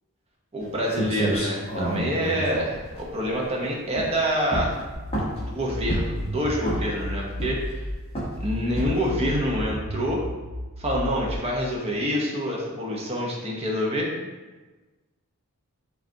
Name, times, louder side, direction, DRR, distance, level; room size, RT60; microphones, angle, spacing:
voice 1, 0.5-4.8 5.2-7.8 8.4-10.2 10.8-14.1, equal, 25° right, -2 dB, 0.7 m, -27 dB
sound 1, 0.6-0.7 0.9-3.5 3.9-4.2 4.5-5.5 5.9-6.3 6.6-7.0 7.4-7.8 8.2-8.4 8.8-9.1, right 1 dB, 25° left, 0.9 m, -29 dB
sound 2, 4.9-7.9 8.3-11.4, equal, 60° right, 0.9 m, -33 dB
5.0 x 2.4 x 2.6 m, 1.2 s
head